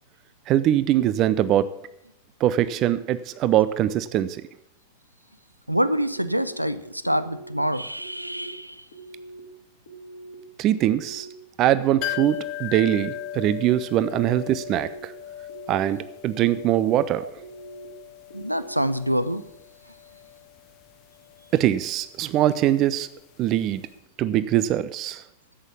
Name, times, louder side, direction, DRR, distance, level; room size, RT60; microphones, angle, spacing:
voice 1, 0.5-1.7 2.4-4.4 10.6-11.3 11.6-15.1 15.7-17.3 21.5-23.1 23.4-23.8 24.2-25.2, right 12 dB, 35° right, 15 dB, 0.5 m, -22 dB
voice 2, 5.7-8.8 17.2-17.3 18.3-19.4, equal, 90° right, 14 dB, 0.6 m, -26 dB
sound 1, 6.1-6.6 7.0-7.5 8.0-8.5 8.9-9.4 9.9-10.4 10.8-11.3 11.7-12.2 12.7-13.2 13.6-14.1 14.5-15.0 15.5-16.0 16.4-16.9 17.4-17.9 18.3-18.8, right 2 dB, 65° left, 1.8 m, -43 dB
sound 2, 12.0-23.6 23.9-24.0, left 13 dB, 40° left, 0.9 m, -38 dB
11.0 x 8.1 x 8.6 m, 0.82 s
figure-of-eight pair, 90°, 0 cm